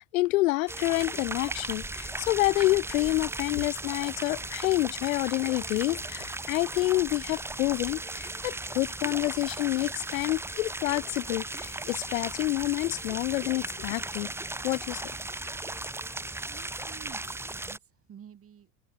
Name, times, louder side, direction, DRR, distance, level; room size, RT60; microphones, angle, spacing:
voice 1, 0.0-14.3 14.6-15.0, left 19 dB, 75° left, 0.7 m, -28 dB
sound 1, 0.7-17.8, right 2 dB, 5° right, 1.0 m, -37 dB
voice 2, 16.5-18.7, right 8 dB, 35° right, 6.0 m, -51 dB
hypercardioid pair, 85°, 41 cm